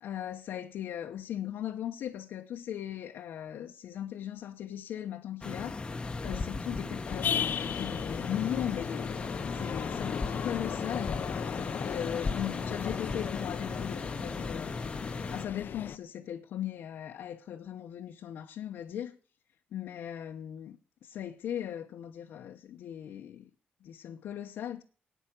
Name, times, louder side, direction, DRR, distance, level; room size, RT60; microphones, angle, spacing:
voice 1, 0.0-11.2 11.8-19.2 19.7-23.5 23.8-24.8, left 10 dB, 90° left, 1.0 m, -38 dB
sound 1, 5.4-15.5, left 3 dB, 25° left, 0.9 m, -37 dB
sound 2, 7.0-16.0, left 8 dB, 65° left, 0.7 m, -36 dB
10.0 x 9.2 x 7.6 m
cardioid pair, 110°, 4 cm